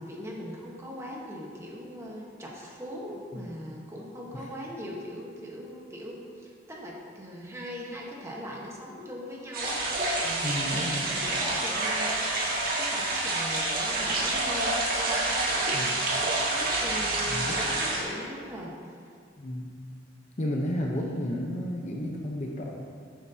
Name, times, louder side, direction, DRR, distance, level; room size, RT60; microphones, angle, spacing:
voice 1, 0.0-18.8 19.0-19.1, equal, 15° right, -3 dB, 1.3 m, -40 dB
sound 1, 9.5-18.0, right 2 dB, 50° right, 1.5 m, -28 dB
voice 2, 10.4-11.1 15.7-15.9 17.3-17.6 19.4-19.7 20.4-22.7, left 1 dB, 40° left, 0 dB, 0.8 m, -32 dB
11.0 x 9.0 x 2.8 m, 2.1 s
head